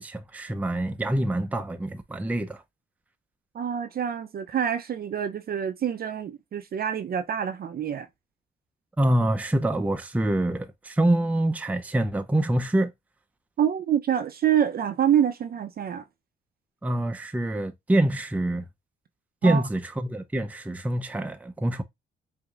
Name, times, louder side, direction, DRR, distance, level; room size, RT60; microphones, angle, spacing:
voice 1, 0.0-2.6 9.0-12.9 16.8-18.6 19.4-21.8, right 1 dB, 5° right, 0.6 m, -25 dB
voice 2, 3.5-8.1 13.6-16.0 19.4-19.6, right 9 dB, 50° right, 0.6 m, -26 dB
4.8 x 2.7 x 2.4 m
cardioid pair, 90°, 20 cm